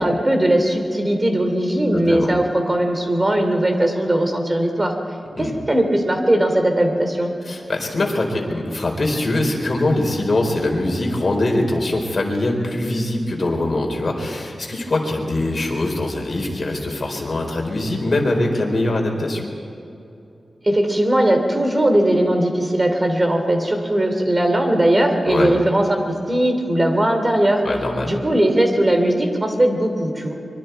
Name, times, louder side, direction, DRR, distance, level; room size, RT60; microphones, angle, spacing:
voice 1, 0.0-4.9 5.4-7.3 20.6-27.6 28.0-30.3, right 1 dB, 25° right, 4 dB, 2.9 m, -19 dB
voice 2, 1.9-2.3 5.3-5.5 7.5-19.4 25.3-25.5 27.6-28.1, left 2 dB, 45° left, 1 dB, 4.2 m, -22 dB
25.0 x 23.5 x 4.6 m, 2.7 s
wide cardioid pair, 110°, 0 cm